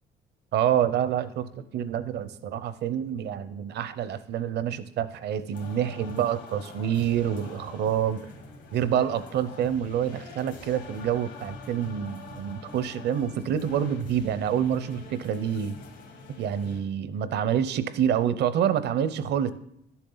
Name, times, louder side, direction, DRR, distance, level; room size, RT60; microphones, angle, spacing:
voice 1, 0.5-8.2 8.7-15.7 16.4-19.5, right 9 dB, 65° right, 0.7 m, -27 dB
sound 1, 5.5-16.8, left 3 dB, 80° left, 2.2 m, -45 dB
11.5 x 7.0 x 4.0 m
cardioid pair, 95°, 19 cm